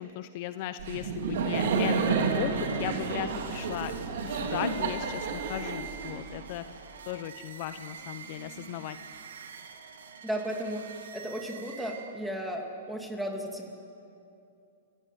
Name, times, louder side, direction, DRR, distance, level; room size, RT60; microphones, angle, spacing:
voice 1, 0.0-3.9 4.2-9.0, left 12 dB, 45° left, 11 dB, 0.8 m, -37 dB
Laughter, 0.8-6.6, right 5 dB, 65° right, 3.4 m, -30 dB
sound 1, 1.4-12.5, right 7 dB, 85° right, 2.6 m, -46 dB
voice 2, 10.2-13.7, equal, ahead, 2 dB, 2.7 m, -35 dB
29.5 x 16.0 x 9.3 m, 2.7 s
hypercardioid pair, 150°, 0 cm